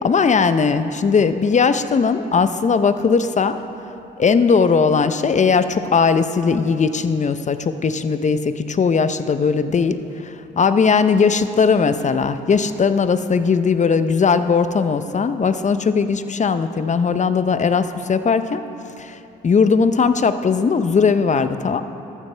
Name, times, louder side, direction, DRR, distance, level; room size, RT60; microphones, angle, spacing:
voice 1, 0.0-3.6 4.2-18.6 19.0-19.2 19.4-21.8, left 5 dB, 35° left, 11 dB, 0.6 m, -18 dB
13.5 x 12.0 x 3.3 m, 2.9 s
supercardioid pair, 60°, 20 cm